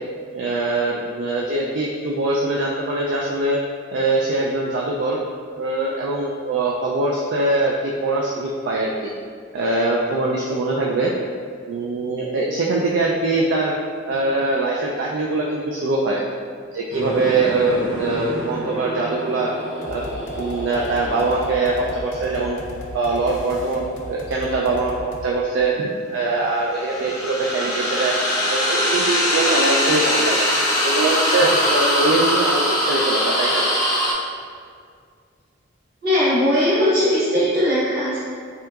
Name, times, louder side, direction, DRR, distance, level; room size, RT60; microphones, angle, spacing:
voice 1, 0.3-3.6 3.9-5.2 5.6-9.1 9.5-11.1 11.7-13.7 14.1-16.2 16.7-19.5 19.9-20.1 20.4-22.6 22.9-23.8 24.1-25.8 26.1-28.2 28.5-30.5 30.8-33.6, right 2 dB, 70° right, -3 dB, 0.3 m, -22 dB
sound 1, 16.9-22.9, right 1 dB, 25° right, 0.8 m, -32 dB
sound 2, 19.0-24.1 26.6-34.1, equal, 15° left, 0.5 m, -23 dB
sound 3, 19.8-25.3, left 1 dB, 80° left, 0.5 m, -37 dB
voice 2, 36.0-38.2, left 1 dB, 50° right, -9 dB, 1.1 m, -19 dB
3.3 x 2.8 x 2.3 m, 2.1 s
head